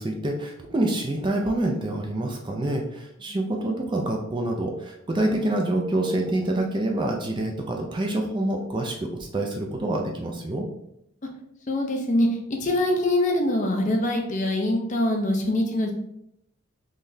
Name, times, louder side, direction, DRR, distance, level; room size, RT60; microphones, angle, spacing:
voice 1, 0.0-10.6, right 1 dB, 20° right, 1 dB, 0.4 m, -27 dB
voice 2, 11.7-12.3 12.6-15.9, left 1 dB, 35° left, 3 dB, 0.5 m, -23 dB
3.9 x 3.2 x 2.6 m, 0.77 s
head